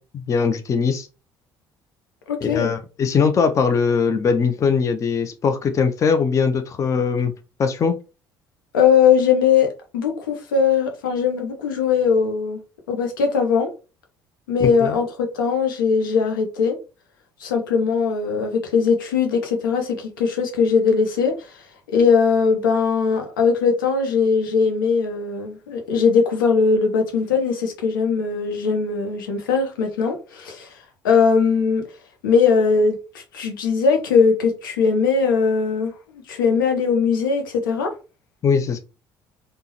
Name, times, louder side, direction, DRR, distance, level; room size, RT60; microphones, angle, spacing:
voice 1, 0.1-1.1 2.4-7.3 7.6-8.0 14.6-15.0 38.4-38.8, left 5 dB, 30° left, 0.4 m, -20 dB
voice 2, 2.3-2.7 8.7-12.6 12.9-13.7 14.5-16.8 17.4-21.5 21.9-30.7 31.0-31.8 32.2-35.9 36.3-37.9, left 5 dB, 70° left, 0.7 m, -20 dB
3.5 x 2.0 x 2.9 m
figure-of-eight pair, 55°, 11 cm